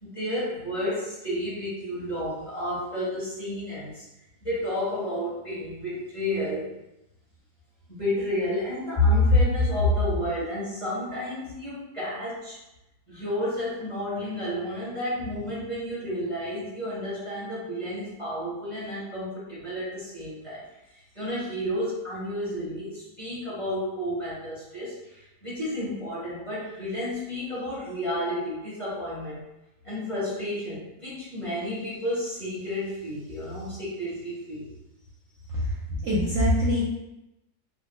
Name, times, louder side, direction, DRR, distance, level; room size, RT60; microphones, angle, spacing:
voice 1, 0.0-4.0 4.4-6.7 7.9-12.6 13.1-20.6 20.9-29.4 29.8-34.7, left 1 dB, 20° left, -10 dB, 1.3 m, -30 dB
voice 2, 36.0-36.8, equal, 60° right, -7 dB, 0.9 m, -23 dB
3.4 x 2.3 x 3.0 m, 0.91 s
omnidirectional pair, 1.9 m